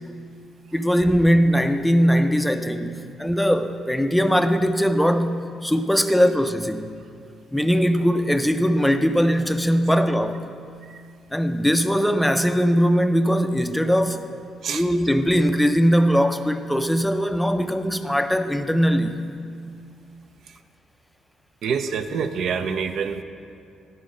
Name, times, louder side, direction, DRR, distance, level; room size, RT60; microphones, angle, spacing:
voice 1, 0.7-6.9 7.5-10.4 11.3-14.2 14.7-19.2, equal, 5° left, 8 dB, 0.4 m, -20 dB
voice 2, 21.6-23.2, right 6 dB, 70° right, 8 dB, 0.4 m, -27 dB
11.0 x 3.8 x 5.2 m, 2.3 s
cardioid pair, 90°, 0 cm